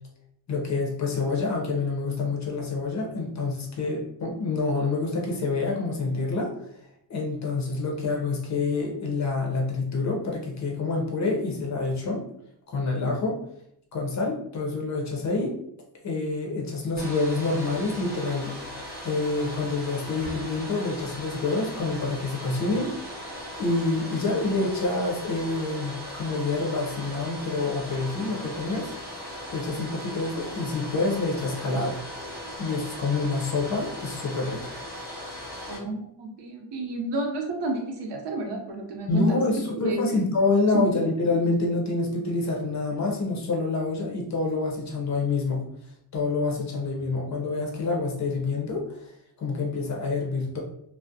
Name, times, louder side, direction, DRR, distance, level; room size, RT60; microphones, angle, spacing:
voice 1, 0.5-6.5 7.1-12.3 12.7-13.4 13.9-15.6 16.0-18.6 19.0-22.9 23.6-28.9 29.5-32.0 32.6-34.7 39.1-45.6 46.1-49.1 49.4-50.6, left 3 dB, 40° left, -1 dB, 0.5 m, -27 dB
Domestic sounds home sounds, 17.0-35.8, left 1 dB, 25° right, 0.5 m, -38 dB
voice 2, 35.7-39.4 39.8-40.0 40.7-40.8, right 2 dB, 70° right, 2 dB, 0.7 m, -30 dB
2.3 x 2.0 x 2.6 m, 0.72 s
wide cardioid pair, 165°, 44 cm